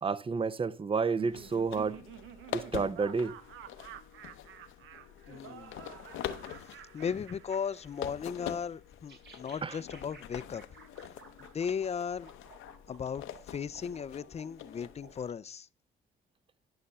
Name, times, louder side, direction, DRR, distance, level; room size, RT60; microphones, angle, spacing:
voice 1, 0.0-2.0 2.5-3.3 9.6-9.8, right 5 dB, 25° right, 0.7 m, -30 dB
Laughter, 0.9-8.4, right 10 dB, 85° right, 0.8 m, -50 dB
sound 1, 1.3-15.3, left 11 dB, 85° left, 0.8 m, -45 dB
voice 2, 5.3-5.7 6.9-10.6 11.4-12.3 12.9-15.7, left 7 dB, 35° left, 0.5 m, -36 dB
sound 2, 9.1-15.4, right 4 dB, 60° right, 3.7 m, -56 dB
11.0 x 5.8 x 6.6 m
cardioid pair, 90°, 20 cm